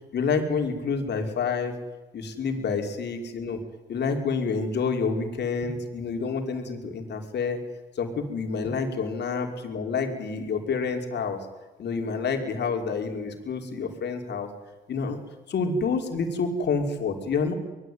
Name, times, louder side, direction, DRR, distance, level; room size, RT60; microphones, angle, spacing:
voice 1, 0.1-1.7 2.1-3.6 3.9-7.6 8.0-11.4 11.8-14.5 14.9-15.2 15.5-17.5, left 5 dB, 60° left, 4 dB, 5.4 m, -28 dB
25.5 x 20.5 x 9.7 m, 1.1 s
supercardioid pair, 60°, 20 cm